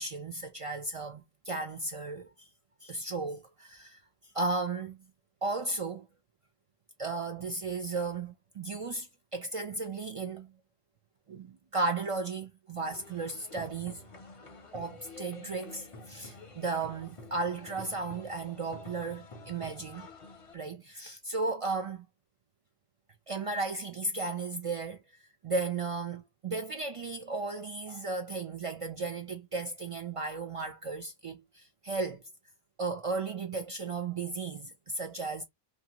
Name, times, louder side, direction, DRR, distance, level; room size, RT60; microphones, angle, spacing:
voice 1, 0.0-2.5 2.8-4.0 4.3-5.0 5.4-6.1 7.0-10.5 11.3-14.0 14.7-20.1 20.5-22.0 23.3-32.2 32.8-35.4, right 3 dB, 55° right, 0.4 m, -35 dB
sound 1, 12.8-20.6, left 2 dB, 40° left, 0.5 m, -49 dB
2.6 x 2.3 x 2.8 m
omnidirectional pair, 1.0 m